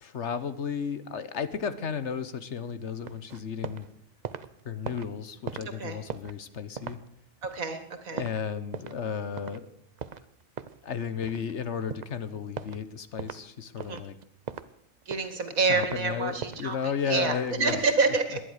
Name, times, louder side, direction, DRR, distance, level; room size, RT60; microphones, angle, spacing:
voice 1, 0.0-3.9 4.6-7.0 8.1-9.7 10.8-14.1 15.7-17.9, left 7 dB, 60° left, 13 dB, 1.3 m, -33 dB
sound 1, 3.0-3.9 4.1-9.1 9.4-9.6 10.0-11.6 11.9-12.2 12.6-12.8 13.2-13.4 13.8-14.7 15.0-16.0 16.4-16.7, right 6 dB, 45° right, 0.6 m, -39 dB
voice 2, 7.4-8.2 13.8-14.0 15.1-18.4, right 4 dB, 85° right, 8 dB, 2.5 m, -28 dB
19.0 x 11.5 x 6.5 m, 0.68 s
omnidirectional pair, 1.4 m